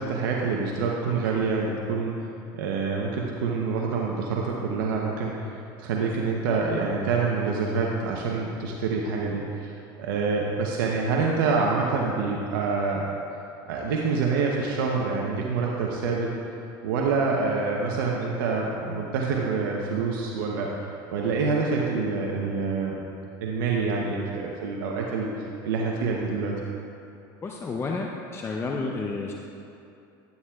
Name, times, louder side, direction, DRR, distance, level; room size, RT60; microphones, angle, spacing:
voice 1, 0.0-2.2 2.5-5.5 5.8-13.0 13.7-20.7 21.1-23.0 23.4-25.3 25.6-26.5, right 4 dB, 85° right, -2 dB, 0.8 m, -26 dB
voice 2, 27.4-29.3, left 3 dB, 25° left, 0 dB, 0.5 m, -31 dB
10.0 x 9.6 x 2.3 m, 2.7 s
supercardioid pair, 110°, 11 cm